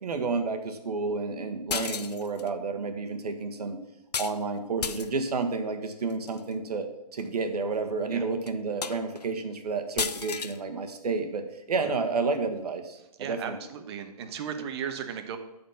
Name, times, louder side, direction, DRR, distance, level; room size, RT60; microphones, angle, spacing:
voice 1, 0.0-3.8 4.2-6.9 7.1-13.6, right 4 dB, 75° right, 6 dB, 1.4 m, -30 dB
sound 1, 1.7-2.5 4.1-4.4 4.8-5.3 6.1-6.4 7.2-7.3 7.7-7.8 8.5-8.6 8.8-9.3 10.0-10.6, left 6 dB, 85° left, 0.7 m, -32 dB
voice 2, 13.2-15.4, right 8 dB, 40° right, 7 dB, 1.1 m, -36 dB
12.5 x 4.3 x 5.7 m, 0.93 s
hypercardioid pair, 145°, 20 cm